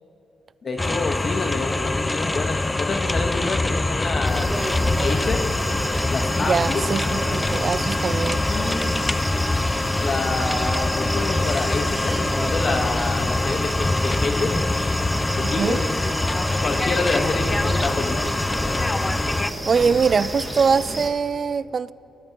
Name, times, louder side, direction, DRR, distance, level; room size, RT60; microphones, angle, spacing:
voice 1, 0.6-4.5 5.0-5.5 6.1-6.8 7.8-8.2 8.5-8.9 10.0-14.6 15.3-15.8 16.6-18.4, left 3 dB, 50° left, 1.3 m, -28 dB
sound 1, 0.8-19.5, left 2 dB, 20° left, 0.4 m, -24 dB
sound 2, 4.2-21.1, right 1 dB, 10° right, 1.8 m, -31 dB
voice 2, 6.4-8.4 15.4-15.8 19.6-21.9, right 5 dB, 50° right, 0.4 m, -22 dB
19.5 x 13.0 x 3.0 m
supercardioid pair, 65°, 0 cm